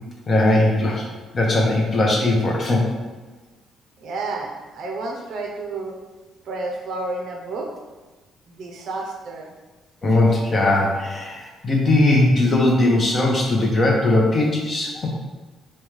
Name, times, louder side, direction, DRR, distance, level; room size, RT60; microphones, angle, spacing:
voice 1, 0.3-1.0 1.3-2.9 10.0-15.1, left 2 dB, 25° left, -1 dB, 0.7 m, -19 dB
voice 2, 4.0-5.9 6.4-7.7 8.5-9.5, right 3 dB, 55° right, 1 dB, 0.5 m, -30 dB
5.1 x 2.2 x 3.1 m, 1.3 s
cardioid pair, 170°, 0 cm